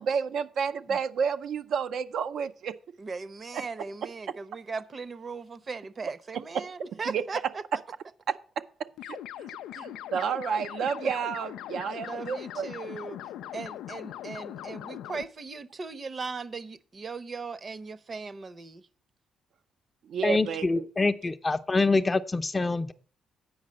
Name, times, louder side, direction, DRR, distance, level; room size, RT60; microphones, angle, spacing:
voice 1, 0.0-2.8 3.5-4.3 6.3-6.6 7.1-7.5 8.3-9.5 9.7-12.7 20.0-20.9, right 6 dB, 70° right, 0.5 m, -31 dB
voice 2, 3.0-7.6 12.0-13.2 13.5-18.8, right 4 dB, 35° right, 0.7 m, -38 dB
sound 1, 9.0-15.2, left 12 dB, 85° left, 0.4 m, -40 dB
voice 3, 20.2-22.9, left 3 dB, 25° left, 0.6 m, -25 dB
8.7 x 4.8 x 7.5 m
cardioid pair, 90°, 0 cm